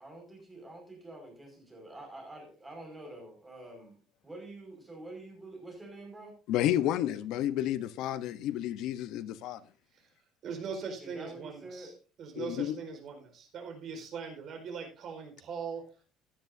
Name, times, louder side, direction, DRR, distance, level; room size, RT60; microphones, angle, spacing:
voice 1, 0.0-6.3 11.0-11.9, right 2 dB, 10° right, 5.4 m, -47 dB
voice 2, 6.5-9.6 12.3-12.7, left 12 dB, 60° left, 0.9 m, -31 dB
voice 3, 10.4-11.9 12.2-15.8, right 5 dB, 40° right, 4.6 m, -40 dB
16.5 x 10.5 x 2.7 m
cardioid pair, 165°, 0 cm